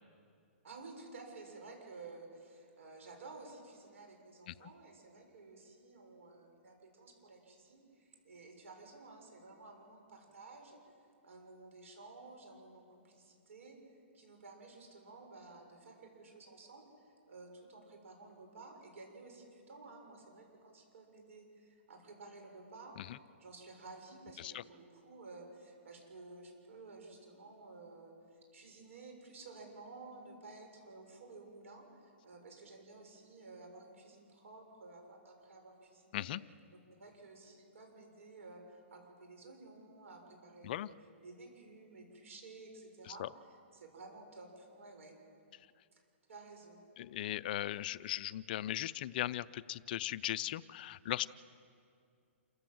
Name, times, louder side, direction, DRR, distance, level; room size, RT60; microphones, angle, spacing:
voice 1, 0.6-10.8 11.2-36.3 37.0-45.2 45.9-46.8, right 3 dB, 80° right, 2 dB, 6.5 m, -53 dB
voice 2, 47.0-51.3, left 13 dB, 45° left, 17 dB, 0.4 m, -38 dB
28.0 x 15.0 x 7.8 m, 2.4 s
hypercardioid pair, 155°, 7 cm